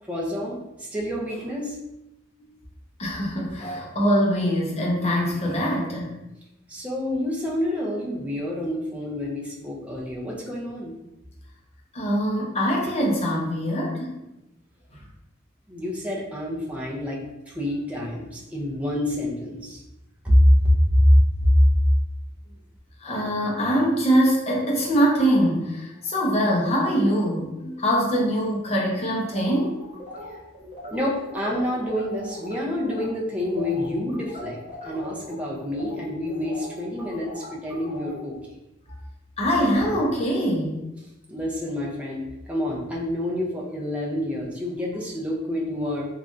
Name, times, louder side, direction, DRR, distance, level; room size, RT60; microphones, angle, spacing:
voice 1, 0.0-1.8 6.7-11.0 15.7-17.2 17.5-19.8 20.2-21.1 21.4-21.5 30.9-34.6 34.8-38.4 41.3-46.1, left 1 dB, 5° right, -4 dB, 0.5 m, -27 dB
voice 2, 3.0-6.2 11.9-14.1 23.0-29.7 39.4-40.8, equal, 30° left, -2 dB, 0.7 m, -23 dB
Little Robot Sound, 29.3-32.5 32.8-33.1 33.4-38.2, left 1 dB, 30° right, 1.1 m, -39 dB
3.2 x 2.4 x 2.5 m, 0.93 s
head